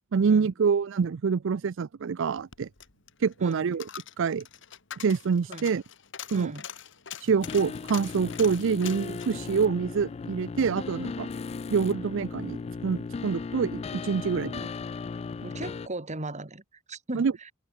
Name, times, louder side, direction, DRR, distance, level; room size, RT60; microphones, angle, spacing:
voice 1, 0.1-2.7 3.2-3.9 4.2-4.4 5.0-5.8 6.3-6.5 7.2-11.3 11.7-12.6 12.8-14.7 17.1-17.3, right 5 dB, 65° right, 0.4 m, -26 dB
Coin (dropping), 2.3-10.7 11.1-11.2, left 9 dB, 65° left, 2.4 m, -44 dB
voice 2, 6.3-6.7 15.4-17.5, right 2 dB, 35° right, 2.6 m, -38 dB
sound 1, 7.4-15.9, left 4 dB, 30° left, 0.3 m, -36 dB
head